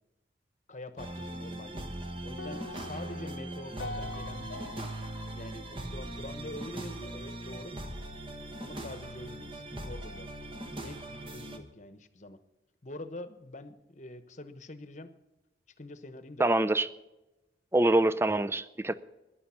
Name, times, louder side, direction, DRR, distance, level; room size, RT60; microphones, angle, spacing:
voice 1, 0.7-1.8 2.2-4.9 5.3-7.7 8.6-10.3 10.8-12.4 12.8-15.1 15.8-16.8, left 1 dB, 40° left, 11 dB, 1.0 m, -45 dB
sound 1, 1.0-11.6, right 1 dB, 30° right, 1.3 m, -40 dB
sound 2, 2.4-6.7, left 2 dB, 75° left, 0.8 m, -45 dB
voice 2, 16.4-16.9 17.7-18.9, right 1 dB, 15° right, 14 dB, 0.5 m, -25 dB
14.5 x 11.0 x 5.7 m, 0.98 s
head